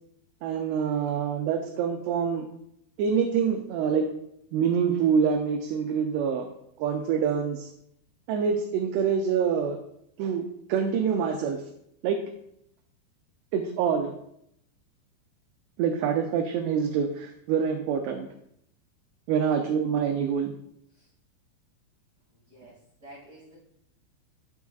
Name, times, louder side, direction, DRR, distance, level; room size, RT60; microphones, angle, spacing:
voice 1, 0.4-2.5 3.0-4.1 4.5-6.5 6.8-7.7 8.3-9.8 10.2-10.4 10.7-11.6 12.0-12.2 13.5-14.1 15.8-18.3 19.3-20.5, right 7 dB, 85° right, 4 dB, 2.4 m, -26 dB
voice 2, 22.3-23.5, right 1 dB, 55° right, -9 dB, 0.8 m, -51 dB
9.5 x 7.1 x 2.3 m, 0.75 s
omnidirectional pair, 5.3 m